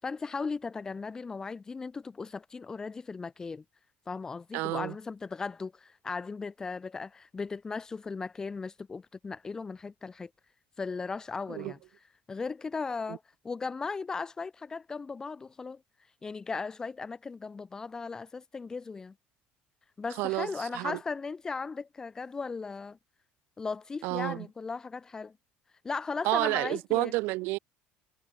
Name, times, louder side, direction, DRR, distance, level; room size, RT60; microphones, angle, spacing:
voice 1, 0.0-3.6 4.1-10.3 10.8-11.8 12.3-15.8 16.2-19.1 20.0-23.0 23.6-25.4 25.8-27.1, left 4 dB, 15° left, 5.9 m, -37 dB
voice 2, 4.5-4.9 11.5-11.7 13.1-13.2 20.2-21.0 24.0-24.5 26.2-27.6, right 22 dB, 70° right, 3.1 m, -30 dB
cardioid pair, 155°, 4 cm